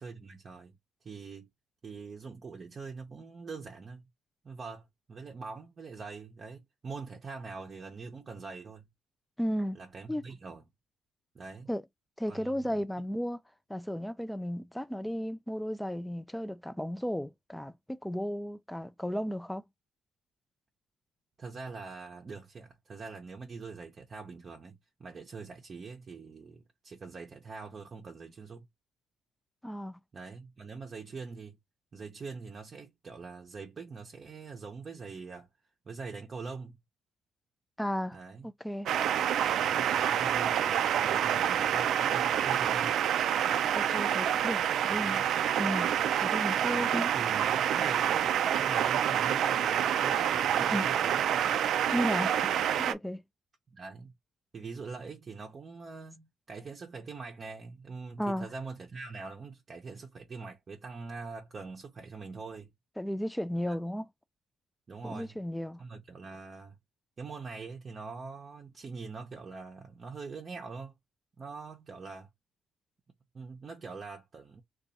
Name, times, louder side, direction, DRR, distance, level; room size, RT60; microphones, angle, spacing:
voice 1, 0.0-1.5 1.8-4.0 4.4-8.9 9.7-10.6 11.3-11.7 12.3-12.8 21.4-28.7 30.1-31.6 31.9-35.5 35.9-36.8 38.1-38.5 39.6-43.0 44.9-45.3 46.7-51.6 53.7-54.1 54.5-62.7 63.7-63.8 64.9-65.4 65.8-66.8 67.2-70.9 71.4-72.3 73.3-74.6, right 4 dB, 40° right, 0.6 m, -43 dB
voice 2, 9.4-9.8 10.1-10.2 11.7-11.8 12.2-13.4 13.7-19.6 29.6-30.0 37.8-38.2 38.4-38.9 43.7-45.2 45.6-46.0 46.2-47.1 50.6-50.8 51.9-52.5 52.8-53.2 58.2-58.5 63.0-64.1 65.0-65.8, equal, 5° left, 0.4 m, -34 dB
sound 1, 38.9-52.9, right 9 dB, 75° right, 0.3 m, -27 dB
2.6 x 2.3 x 4.0 m
cardioid pair, 90°, 0 cm